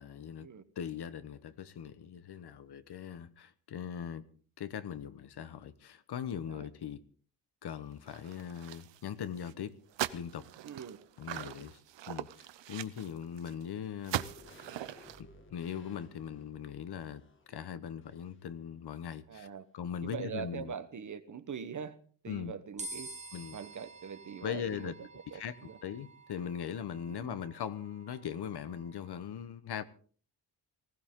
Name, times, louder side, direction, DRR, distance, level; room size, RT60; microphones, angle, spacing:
voice 1, 0.0-0.5 0.8-4.2 4.6-7.0 7.6-9.7 10.1-10.5 11.2-11.8 12.1-14.2 15.5-17.2 17.5-19.5 19.7-20.7 22.3-22.5 23.3-23.6 24.4-24.9 25.3-25.6 25.8-29.8, left 8 dB, 60° left, 1.2 m, -40 dB
sound 1, 8.1-9.1 9.4-9.5 9.9-13.6 14.0-15.2, right 12 dB, 75° right, 0.8 m, -40 dB
voice 2, 10.6-11.0 19.3-19.6 20.0-22.0 22.2-23.1 23.5-25.4 25.7-25.8 27.1-27.4, right 7 dB, 45° right, 1.0 m, -42 dB
sound 2, 14.1-18.6 18.9-19.0, left 1 dB, 25° left, 1.8 m, -58 dB
sound 3, 22.8-29.2, right 2 dB, 15° right, 1.1 m, -49 dB
19.5 x 16.0 x 3.7 m
wide cardioid pair, 165°, 44 cm